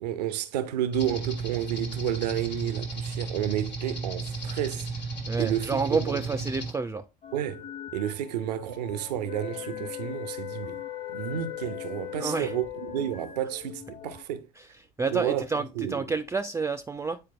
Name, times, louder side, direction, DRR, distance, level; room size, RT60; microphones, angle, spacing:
voice 1, 0.0-4.9 5.4-6.2 7.3-10.8 11.1-14.5 15.1-15.4 15.8-15.9, right 11 dB, 70° right, 0.6 m, -31 dB
sound 1, 0.9-6.7, right 3 dB, 90° left, 1.4 m, -34 dB
voice 2, 5.3-7.0 12.2-12.5 14.6-14.7 15.0-17.2, right 4 dB, 15° right, 0.4 m, -29 dB
sound 2, 7.2-14.2, left 8 dB, 35° left, 1.0 m, -45 dB
sound 3, 9.2-13.2, left 14 dB, 60° left, 0.5 m, -38 dB
8.8 x 4.4 x 2.4 m
figure-of-eight pair, 60°, 21 cm